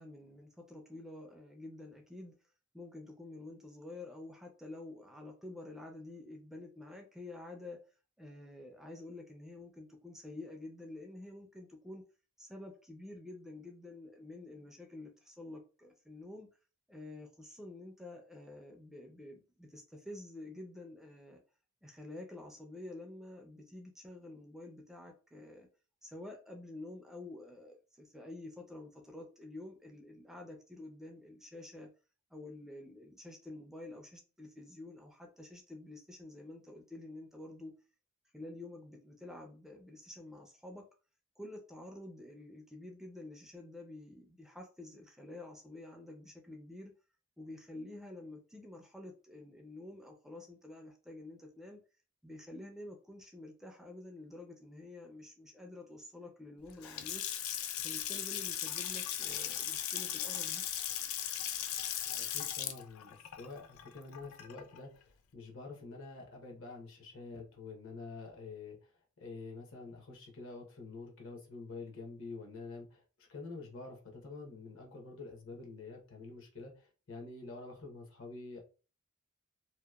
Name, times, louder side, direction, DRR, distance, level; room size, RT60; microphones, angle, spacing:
voice 1, 0.0-2.3 2.7-7.8 8.2-12.0 12.4-16.5 16.9-21.4 21.8-25.7 26.0-31.9 32.3-37.7 38.3-40.8 41.4-46.9 47.4-51.8 52.2-57.2 57.8-60.6, left 2 dB, ahead, 0.3 m, -49 dB
Water tap faucet / Sink (filling or washing) / Splash splatter, 56.7-64.8, left 10 dB, 85° left, 0.4 m, -38 dB
voice 2, 62.1-78.6, left 3 dB, 65° left, 0.8 m, -47 dB
2.8 x 2.0 x 2.2 m
head